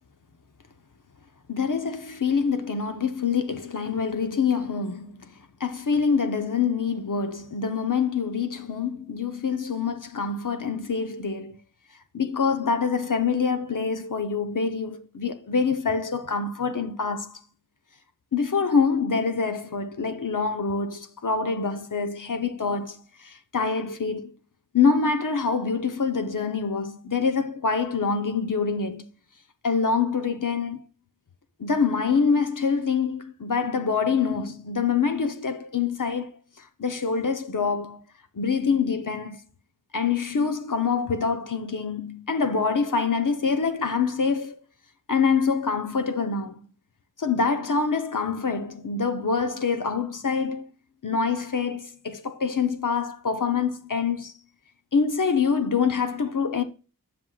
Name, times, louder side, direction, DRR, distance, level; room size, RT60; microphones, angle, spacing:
voice 1, 1.5-5.3 5.6-11.6 12.1-17.4 18.3-24.3 24.7-29.1 29.6-30.8 31.6-36.3 36.8-38.0 38.4-39.4 39.9-44.6 45.1-46.6 47.2-50.7 51.0-54.3 54.9-56.6, left 5 dB, 55° left, 0.9 m, -25 dB
10.5 x 6.2 x 2.4 m
wide cardioid pair, 60°, 37 cm